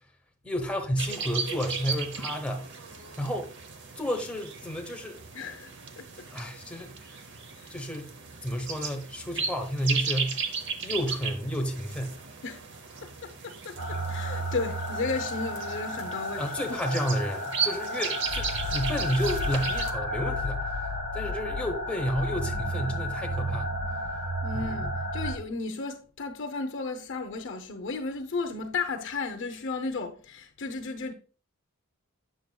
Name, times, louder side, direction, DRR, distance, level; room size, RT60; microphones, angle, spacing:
voice 1, 0.4-2.7 3.2-3.5 4.0-5.2 6.3-7.3 7.7-8.1 8.4-10.4 10.8-12.1 16.4-20.8 21.1-23.8 24.8-24.9, equal, 5° left, 0.8 m, -31 dB
sound 1, 1.0-19.9, right 5 dB, 55° right, 0.7 m, -36 dB
voice 2, 5.3-6.3 7.6-7.7 12.4-12.6 13.0-16.4 16.7-16.8 24.4-31.1, left 4 dB, 55° left, 0.7 m, -34 dB
sound 2, 13.8-25.4, left 1 dB, 75° right, 1.2 m, -32 dB
8.1 x 6.3 x 2.3 m
head